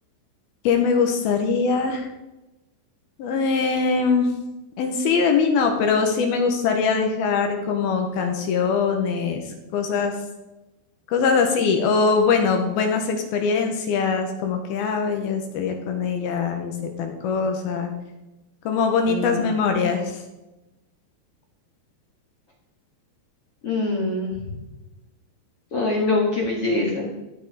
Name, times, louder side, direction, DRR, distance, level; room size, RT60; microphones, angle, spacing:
voice 1, 0.6-2.1 3.2-4.3 4.8-9.4 9.7-10.1 11.1-17.9 18.7-20.2, left 5 dB, 70° left, 4 dB, 2.6 m, -22 dB
voice 2, 19.1-19.5 23.6-24.4 25.7-27.1, left 2 dB, 50° left, -4 dB, 1.9 m, -24 dB
14.5 x 9.0 x 4.9 m, 1.0 s
omnidirectional pair, 5.2 m